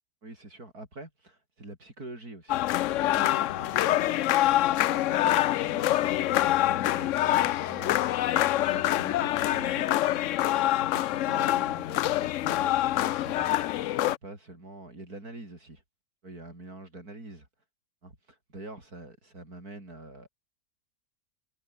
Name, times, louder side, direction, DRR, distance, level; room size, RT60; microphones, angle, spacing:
voice 1, 0.2-2.7 3.1-4.3 4.8-10.4 10.7-13.8 14.1-15.8 16.2-17.5 18.0-20.3, right 2 dB, 90° right, 7.5 m, -45 dB
sound 1, 2.5-14.2, left 14 dB, 70° left, 0.8 m, -25 dB
omnidirectional pair, 1.6 m